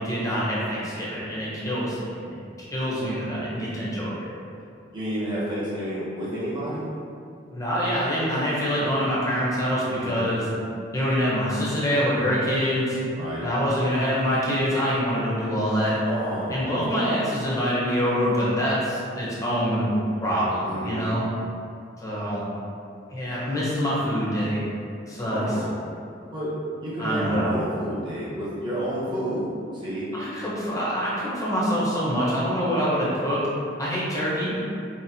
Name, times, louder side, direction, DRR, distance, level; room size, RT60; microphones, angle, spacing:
voice 1, 0.0-2.2 2.6-4.3 7.5-10.5 10.9-13.0 13.4-16.0 16.5-19.9 20.2-21.3 22.0-22.5 23.1-24.6 25.1-25.6 27.0-27.5 30.1-33.4 33.8-34.6, equal, 15° left, -8 dB, 0.8 m, -25 dB
voice 2, 4.9-6.9 10.0-10.2 13.2-13.5 16.0-16.8 20.7-21.0 25.3-25.8 26.3-26.5 26.8-29.5 29.7-30.1, equal, 25° right, -9 dB, 0.8 m, -30 dB
4.2 x 2.0 x 2.7 m, 2.5 s
head